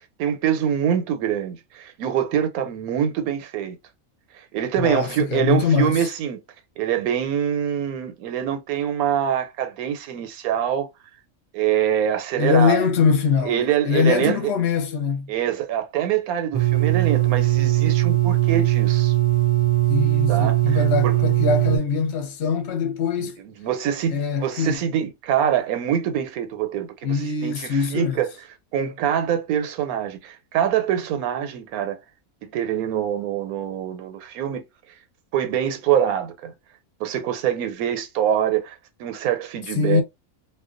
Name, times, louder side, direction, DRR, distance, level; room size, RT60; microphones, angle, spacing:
voice 1, 0.2-3.8 4.3-6.4 6.8-10.9 11.5-12.8 13.4-14.5 15.3-19.1 20.3-21.2 23.2-27.2 27.4-28.3 28.7-32.0 32.4-34.6 35.3-36.5 37.0-40.0, right 9 dB, 90° right, 1.1 m, -24 dB
voice 2, 4.8-6.1 12.4-15.3 19.9-23.4 24.1-24.8 27.0-28.2 39.7-40.0, left 6 dB, 55° left, 0.8 m, -22 dB
sound 1, 16.5-21.8, right 16 dB, 45° right, 0.4 m, -19 dB
2.4 x 2.2 x 2.4 m
omnidirectional pair, 1.5 m